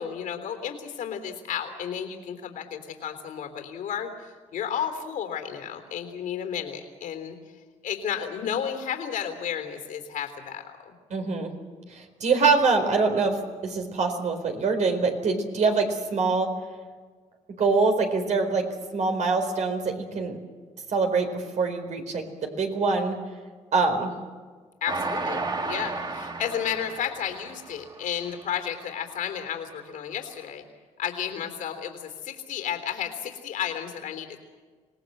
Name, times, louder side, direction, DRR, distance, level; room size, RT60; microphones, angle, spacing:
voice 1, 0.0-7.3 7.8-10.9 24.8-30.6 31.0-34.4, left 8 dB, 75° left, 7 dB, 3.4 m, -32 dB
voice 2, 11.1-11.5 11.9-13.4 13.6-16.5 17.6-18.7 18.9-20.4 20.9-23.2 23.7-24.1, right 4 dB, 60° right, 5 dB, 4.4 m, -24 dB
Train, 24.9-28.3 28.8-28.9 29.2-29.3, right 3 dB, 30° right, 2.1 m, -33 dB
26.5 x 18.5 x 7.9 m, 1.5 s
cardioid pair, 85°, 13 cm